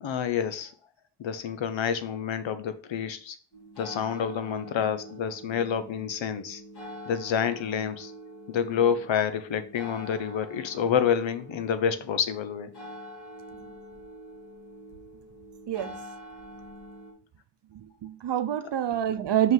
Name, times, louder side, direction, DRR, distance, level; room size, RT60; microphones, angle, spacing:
voice 1, 0.0-0.7 1.2-3.4 3.8-6.6 7.1-8.1 8.5-12.7, left 8 dB, 80° left, 0.8 m, -28 dB
sound 1, 3.5-17.1, equal, 60° left, 2.7 m, -45 dB
voice 2, 17.7-19.5, right 10 dB, 65° right, 0.7 m, -27 dB
5.6 x 5.3 x 3.9 m
cardioid pair, 65°, 45 cm